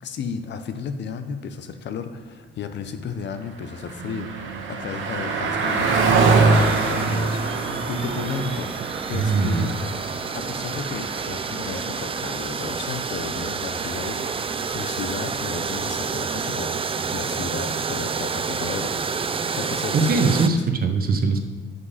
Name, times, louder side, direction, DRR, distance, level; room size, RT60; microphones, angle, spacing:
voice 1, 0.0-9.7 10.3-18.9 19.5-20.2 20.5-20.7, left 6 dB, 60° left, 9 dB, 0.8 m, -34 dB
Car passing by, 3.1-14.9, right 4 dB, 80° right, 1.2 m, -25 dB
sound 1, 6.5-20.5, right 5 dB, 30° right, 0.5 m, -29 dB
voice 2, 9.1-9.7 19.9-21.5, right 4 dB, 50° right, 6 dB, 0.9 m, -21 dB
11.0 x 5.4 x 4.2 m, 1.4 s
cardioid pair, 90°, 20 cm